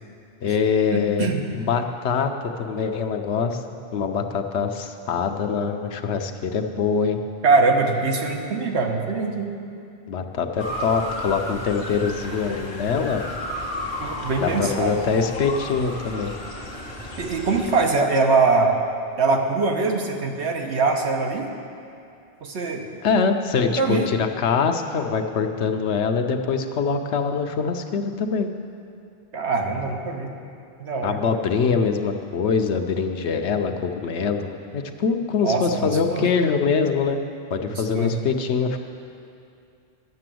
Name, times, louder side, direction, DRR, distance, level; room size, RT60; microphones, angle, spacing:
voice 1, 0.4-1.3 1.5-2.3 2.6-3.6 3.9-7.2 10.1-13.2 14.4-16.3 23.0-28.5 31.0-37.2 37.5-38.8, left 5 dB, 85° left, 6 dB, 1.0 m, -23 dB
voice 2, 0.9-1.4 7.4-9.5 14.0-15.0 17.2-18.7 19.2-21.5 22.4-22.8 23.6-24.1 29.3-30.3 30.8-31.2 35.4-36.3 37.7-38.2, right 4 dB, 85° right, 2 dB, 1.3 m, -22 dB
Motor vehicle (road) / Siren, 10.6-17.9, left 1 dB, 50° left, 1.5 m, -33 dB
11.0 x 6.8 x 7.6 m, 2.5 s
omnidirectional pair, 1.1 m